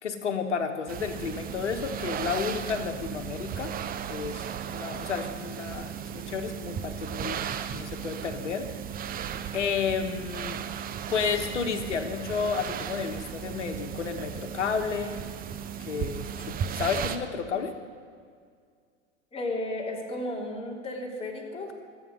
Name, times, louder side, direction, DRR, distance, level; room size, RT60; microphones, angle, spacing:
voice 1, 0.0-3.7 4.1-7.4 7.7-8.7 9.5-10.6 11.1-15.1 15.8-17.7, left 6 dB, 75° left, 7 dB, 1.6 m, -31 dB
sound 1, 0.9-17.2, right 8 dB, 25° right, 0.9 m, -36 dB
voice 2, 19.3-21.7, left 1 dB, 15° left, -2 dB, 3.4 m, -33 dB
25.5 x 8.6 x 5.4 m, 2.1 s
figure-of-eight pair, 90°, 36 cm